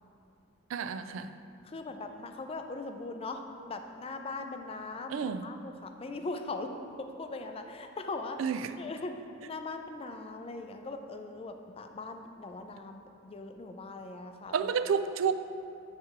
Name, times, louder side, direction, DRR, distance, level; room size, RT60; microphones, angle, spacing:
voice 1, 0.7-1.3 5.1-5.4 8.4-8.7 14.5-15.3, right 6 dB, 80° right, 11 dB, 0.3 m, -30 dB
voice 2, 1.6-6.7 7.2-8.4 8.8-9.1 9.4-14.7, left 3 dB, 30° left, 6 dB, 0.4 m, -40 dB
8.0 x 3.3 x 5.8 m, 2.6 s
head